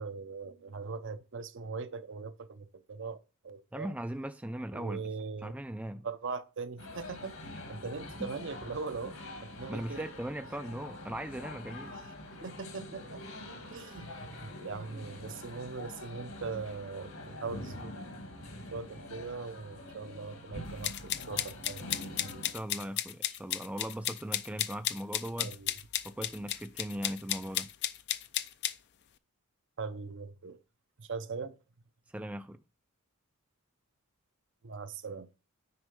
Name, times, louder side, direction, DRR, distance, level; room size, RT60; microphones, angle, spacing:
voice 1, 0.0-3.2 3.4-3.9 4.7-5.5 6.0-7.4 7.7-10.1 11.9-12.0 12.3-13.4 13.7-17.9 18.7-22.4 25.4-25.7 29.8-30.6 31.0-31.6 34.6-35.3, right 4 dB, 55° right, 0.7 m, -40 dB
voice 2, 3.7-5.0 5.4-6.1 8.1-8.3 9.7-12.0 22.5-25.6 26.0-27.7 32.1-32.6, right 1 dB, 5° right, 0.3 m, -39 dB
sound 1, 6.8-22.5, left 1 dB, 75° left, 2.1 m, -45 dB
sound 2, 20.8-28.7, left 12 dB, 50° left, 0.5 m, -34 dB
9.5 x 3.9 x 5.2 m
head